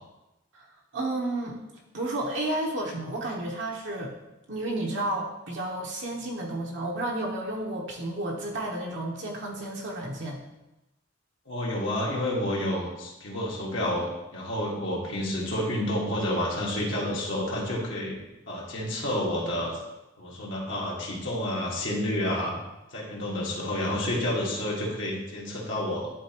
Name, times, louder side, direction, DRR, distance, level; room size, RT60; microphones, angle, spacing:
voice 1, 0.9-1.6 1.9-4.2 4.5-10.4, right 1 dB, 65° right, -2 dB, 1.0 m, -31 dB
voice 2, 11.5-18.2 18.5-19.8 20.2-22.5 22.9-26.1, left 1 dB, 70° left, -4 dB, 1.7 m, -29 dB
11.0 x 3.9 x 2.9 m, 0.97 s
head